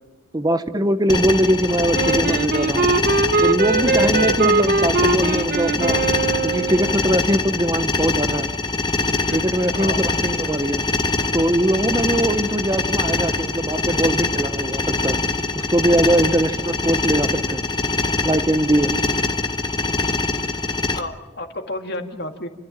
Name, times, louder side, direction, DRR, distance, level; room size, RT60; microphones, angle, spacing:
voice 1, 0.3-2.9 3.4-6.0 6.4-8.5 9.3-10.8 11.3-15.2 15.6-17.6 18.2-18.9, right 1 dB, 20° right, 10 dB, 0.8 m, -21 dB
sound 1, 1.1-21.0, left 3 dB, 20° left, 1.1 m, -23 dB
Wind instrument woodwind instrument, 1.9-7.0, right 3 dB, 50° right, 1.0 m, -21 dB
voice 2, 9.3-10.0 20.9-22.5, left 1 dB, 55° left, 5 dB, 2.1 m, -32 dB
30.0 x 13.5 x 7.4 m, 1.2 s
head